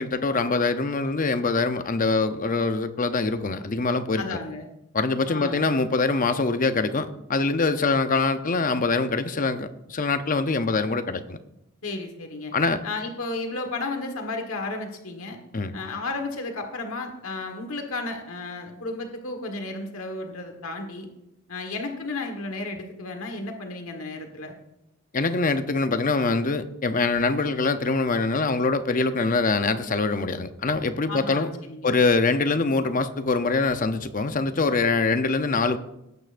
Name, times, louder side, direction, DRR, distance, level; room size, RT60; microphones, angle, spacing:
voice 1, 0.0-4.4 4.9-11.4 12.5-12.8 15.5-15.7 25.1-31.5 31.8-35.8, left 3 dB, 40° left, 10 dB, 0.7 m, -24 dB
voice 2, 4.2-4.7 5.3-5.6 11.8-12.5 12.8-15.4 15.7-21.1 21.5-24.6 31.1-31.9, left 2 dB, 85° left, 4 dB, 1.5 m, -33 dB
18.5 x 9.0 x 2.6 m, 0.86 s
head